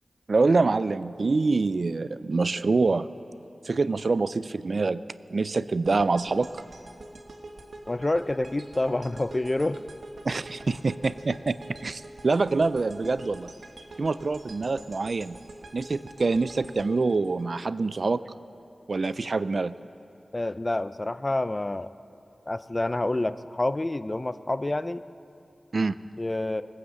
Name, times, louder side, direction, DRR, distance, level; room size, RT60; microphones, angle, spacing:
voice 1, 0.3-3.1 3.7-5.0 5.3-6.6 10.2-11.6 11.8-13.5 14.0-15.4 15.7-18.2 18.9-19.7 25.7-26.0, right 3 dB, 60° right, 15 dB, 0.3 m, -25 dB
sound 1, 5.8-18.0, right 2 dB, 80° right, 1.4 m, -45 dB
voice 2, 7.9-9.8 20.3-21.9 22.5-25.0 26.2-26.6, left 2 dB, 30° left, 14 dB, 0.4 m, -28 dB
19.5 x 9.5 x 7.6 m, 2.7 s
wide cardioid pair, 95°, 0 cm